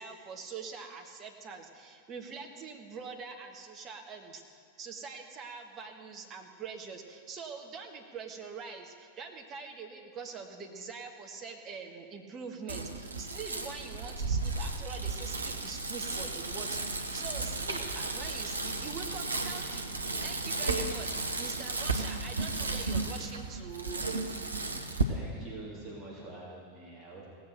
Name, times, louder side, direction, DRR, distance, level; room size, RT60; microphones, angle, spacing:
voice 1, 0.0-19.9 20.2-24.1, right 5 dB, 30° right, 2 dB, 1.6 m, -44 dB
Bicycle, 12.7-25.0, right 3 dB, 75° right, 0.9 m, -34 dB
voice 2, 24.6-27.3, right 2 dB, 10° right, -8 dB, 3.5 m, -46 dB
18.0 x 7.8 x 6.8 m, 2.1 s
figure-of-eight pair, 90°, 0 cm